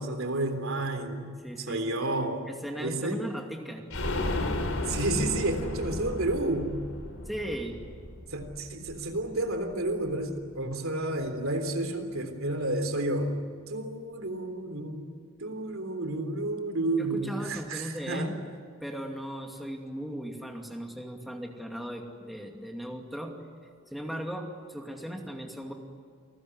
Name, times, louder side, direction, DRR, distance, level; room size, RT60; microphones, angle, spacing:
voice 1, 0.0-2.5 2.8-3.2 4.9-6.8 8.3-13.4 13.7-15.1 15.4-18.3, right 2 dB, 65° right, 7 dB, 3.6 m, -31 dB
voice 2, 1.4-1.8 2.5-3.9 7.3-7.8 17.0-18.4 18.8-23.3 23.9-25.7, equal, ahead, 1 dB, 2.5 m, -37 dB
sound 1, 3.9-9.5 9.8-9.9 10.2-10.3, left 2 dB, 70° left, 4.1 m, -34 dB
29.0 x 20.5 x 9.8 m, 2.1 s
head